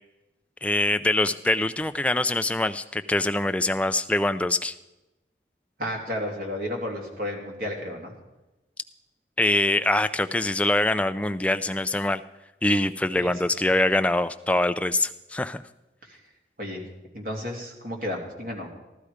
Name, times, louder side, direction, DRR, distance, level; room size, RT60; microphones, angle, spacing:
voice 1, 0.6-4.8 9.4-12.2 12.6-15.6, left 2 dB, 5° left, 10 dB, 0.4 m, -24 dB
voice 2, 5.8-8.1 13.2-13.6 16.1-16.2 16.6-16.8 17.1-18.7, left 1 dB, 50° right, 0 dB, 2.8 m, -32 dB
15.5 x 12.0 x 5.0 m, 1.0 s
head